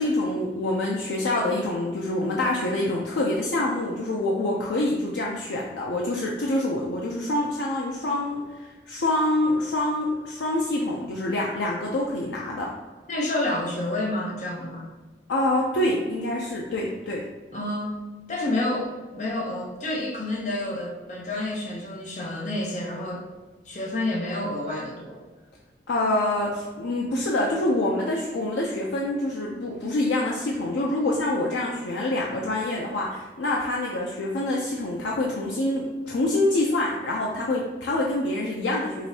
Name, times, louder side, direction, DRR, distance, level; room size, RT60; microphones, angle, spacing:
voice 1, 0.0-12.7 15.3-17.3 25.9-39.1, left 1 dB, 85° left, -2 dB, 0.4 m, -26 dB
voice 2, 13.1-14.9 17.5-23.2 23.7-25.2, left 1 dB, 40° left, -2 dB, 0.7 m, -29 dB
4.9 x 2.6 x 2.7 m, 1.4 s
head